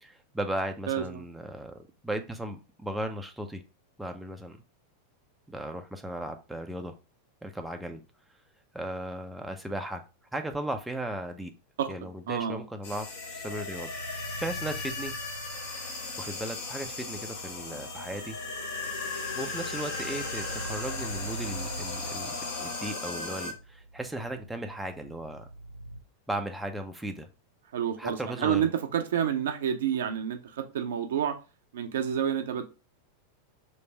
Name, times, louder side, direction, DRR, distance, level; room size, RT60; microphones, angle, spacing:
voice 1, 0.0-3.6 4.0-4.6 5.5-6.9 7.4-8.0 8.7-10.0 10.3-11.5 11.9-15.2 15.7-15.8 16.2-18.4 19.3-25.5 26.3-27.3 28.0-28.6, right 1 dB, 5° right, 5 dB, 0.5 m, -36 dB
voice 2, 0.9-1.2 11.8-11.9 12.3-12.6 27.7-31.4 31.7-32.6, right 9 dB, 60° right, 7 dB, 0.5 m, -29 dB
sound 1, 12.8-23.5, left 3 dB, 50° left, 1.0 m, -37 dB
sound 2, 13.1-26.0, right 2 dB, 90° left, 0.5 m, -43 dB
3.2 x 2.5 x 4.4 m, 0.31 s
figure-of-eight pair, 90°, 0 cm